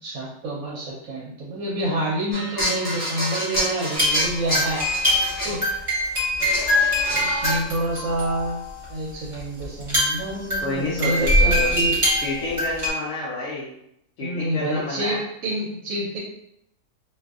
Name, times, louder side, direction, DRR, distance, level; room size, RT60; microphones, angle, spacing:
voice 1, 0.0-4.9 5.4-5.6 7.1-12.0 14.2-16.2, right 1 dB, 65° right, -4 dB, 0.9 m, -28 dB
sound 1, 2.3-5.7 6.4-7.6, equal, 40° left, 1.2 m, -28 dB
sound 2, 4.0-8.9 9.3-9.4 9.6-12.9, left 1 dB, 25° right, 0.9 m, -23 dB
voice 2, 10.3-11.7 12.2-13.7 14.2-15.2, left 2 dB, 65° left, -6 dB, 0.9 m, -29 dB
2.6 x 2.5 x 2.3 m, 0.75 s
omnidirectional pair, 1.6 m